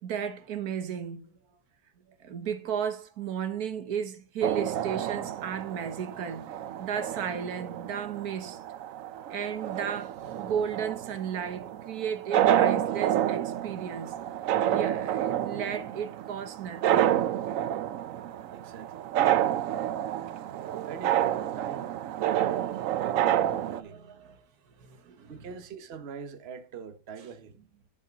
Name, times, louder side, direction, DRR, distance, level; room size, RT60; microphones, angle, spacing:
voice 1, 0.0-1.3 2.2-8.6 9.3-14.1 14.6-17.2 23.6-24.4 24.8-25.3, right 7 dB, 85° right, 1.6 m, -34 dB
sound 1, 4.4-23.8, right 11 dB, 70° right, 1.0 m, -29 dB
voice 2, 18.5-19.1 20.8-22.0 23.0-24.0 25.3-27.6, right 6 dB, 45° right, 1.1 m, -43 dB
11.0 x 5.6 x 5.2 m
omnidirectional pair, 1.6 m